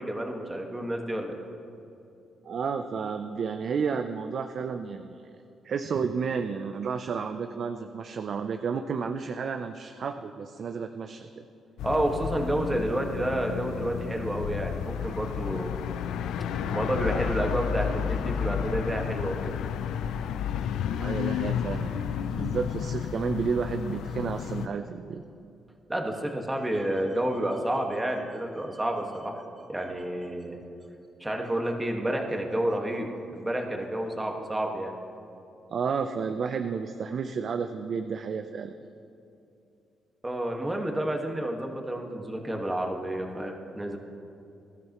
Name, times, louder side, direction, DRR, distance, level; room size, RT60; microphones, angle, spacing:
voice 1, 0.0-1.4 11.8-15.7 16.7-19.6 25.9-29.4 29.7-30.6 31.2-34.9 40.2-44.0, right 1 dB, 10° right, 1 dB, 1.7 m, -30 dB
voice 2, 2.4-5.2 5.6-11.4 21.0-25.2 35.7-38.7, right 6 dB, 55° right, 7 dB, 0.6 m, -31 dB
sound 1, 11.8-24.7, left 8 dB, 85° left, 0.5 m, -31 dB
20.5 x 13.0 x 3.1 m, 2.6 s
cardioid pair, 100°, 0 cm